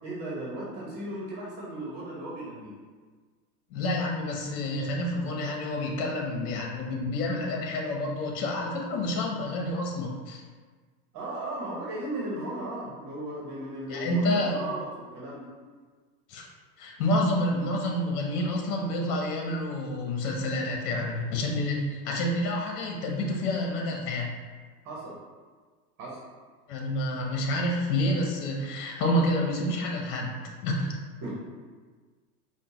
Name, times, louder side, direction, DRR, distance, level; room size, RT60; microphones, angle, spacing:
voice 1, 0.0-2.7 11.1-14.8 15.1-15.4 24.8-25.1 26.0-26.2 31.2-31.4, right 1 dB, 35° right, -5 dB, 1.2 m, -36 dB
voice 2, 3.7-10.4 13.9-14.7 16.3-16.5 16.8-24.3 26.7-30.4 30.6-30.9, left 1 dB, 65° left, 0 dB, 1.1 m, -28 dB
5.3 x 2.4 x 3.0 m, 1.5 s
hypercardioid pair, 105°, 48 cm